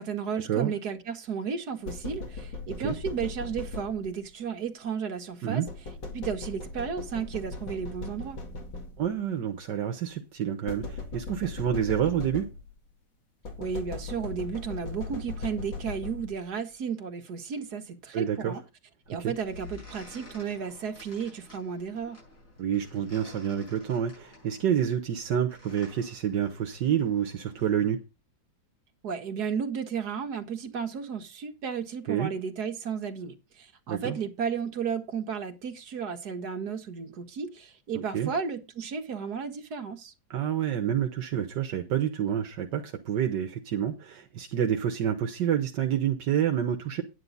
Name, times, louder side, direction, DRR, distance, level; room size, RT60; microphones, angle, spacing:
voice 1, 0.0-5.6 6.1-8.4 13.6-18.6 19.1-22.2 29.0-40.1, right 6 dB, 65° right, 2.0 m, -33 dB
sound 1, 1.8-4.3 5.7-9.2 10.7-12.9 13.4-16.5, left 3 dB, 85° left, 2.9 m, -38 dB
voice 2, 9.0-12.5 18.1-18.6 19.2-19.3 22.6-28.0 32.1-32.3 33.9-34.2 37.9-38.3 40.3-47.0, right 9 dB, 80° right, 1.7 m, -28 dB
sound 2, 19.0-27.7, left 2 dB, 60° left, 7.8 m, -51 dB
10.5 x 9.6 x 4.1 m
omnidirectional pair, 1.9 m